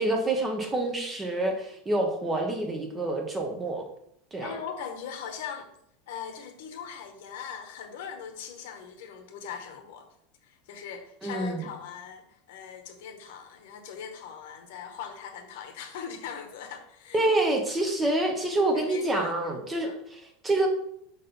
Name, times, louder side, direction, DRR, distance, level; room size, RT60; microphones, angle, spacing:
voice 1, 0.0-3.8 4.3-4.5 11.2-11.6 17.1-20.7, right 2 dB, 10° right, 3 dB, 0.8 m, -27 dB
voice 2, 4.4-5.7 6.1-10.1 10.4-17.2 18.7-19.3 19.8-20.0, left 7 dB, 70° left, 5 dB, 1.2 m, -40 dB
5.6 x 4.2 x 5.2 m, 0.73 s
supercardioid pair, 170°, 0 cm